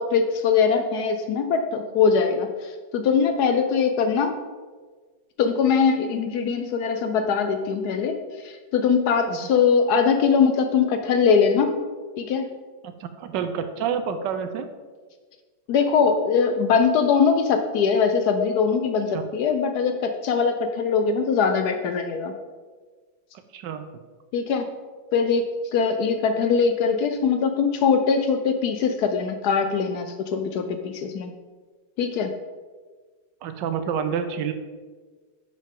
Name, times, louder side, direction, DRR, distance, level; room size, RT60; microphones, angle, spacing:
voice 1, 0.0-4.3 5.4-11.8 12.2-12.4 15.7-22.3 24.3-24.7 25.1-31.3 32.0-32.3, left 6 dB, 70° left, 7 dB, 1.0 m, -22 dB
voice 2, 12.8-14.7 19.1-19.3 23.5-23.9 33.4-34.5, right 7 dB, 75° right, 9 dB, 1.2 m, -28 dB
10.5 x 5.1 x 3.7 m, 1.4 s
omnidirectional pair, 2.0 m